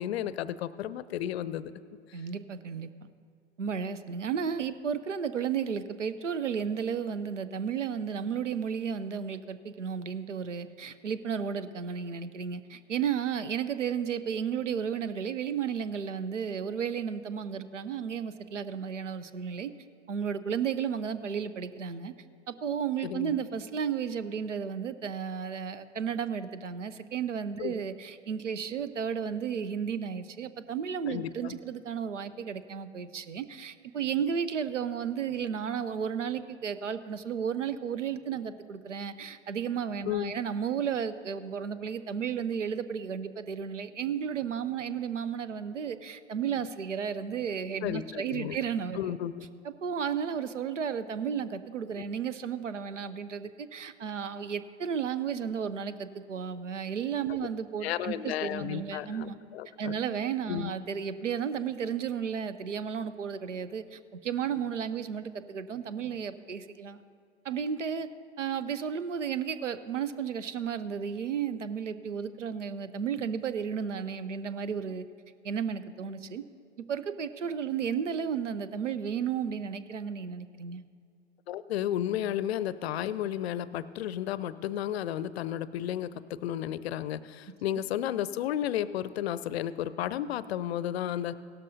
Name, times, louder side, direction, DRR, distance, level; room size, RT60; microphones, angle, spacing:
voice 1, 0.0-1.7 2.1-2.2 23.0-23.4 27.6-27.7 31.1-31.6 40.1-40.3 47.8-48.6 48.9-49.5 57.3-57.4 57.8-59.9 60.5-60.7 81.5-91.4, left 11 dB, 60° left, 16 dB, 0.5 m, -33 dB
voice 2, 2.1-3.1 3.6-19.7 20.1-22.1 22.5-49.0 49.6-59.4 59.8-67.0 67.4-68.1 68.4-75.1 75.4-76.4 76.9-80.8, right 7 dB, 85° right, 13 dB, 0.6 m, -33 dB
17.0 x 12.5 x 2.7 m, 2.2 s
figure-of-eight pair, 90°, 36 cm